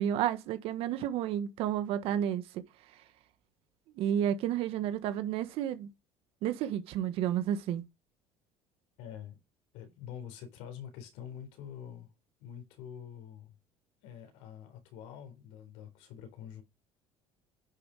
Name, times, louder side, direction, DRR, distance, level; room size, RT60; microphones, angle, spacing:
voice 1, 0.0-2.6 4.0-5.9 6.4-7.8, right 10 dB, 65° right, 1.4 m, -31 dB
voice 2, 9.0-9.4 9.7-12.1 12.4-13.5 14.0-16.6, left 9 dB, 80° left, 3.9 m, -46 dB
9.9 x 7.1 x 4.8 m
cardioid pair, 145°, 11 cm